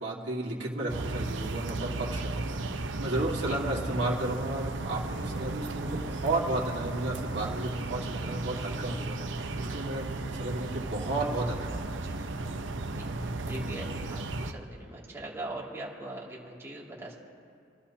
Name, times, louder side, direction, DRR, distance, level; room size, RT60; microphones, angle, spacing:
voice 1, 0.0-12.1, right 2 dB, 75° right, -4 dB, 2.1 m, -33 dB
sound 1, 0.9-14.5, right 2 dB, 90° right, 0.8 m, -35 dB
voice 2, 12.9-17.2, right 1 dB, 15° right, -5 dB, 2.6 m, -41 dB
28.0 x 13.0 x 2.9 m, 2.4 s
head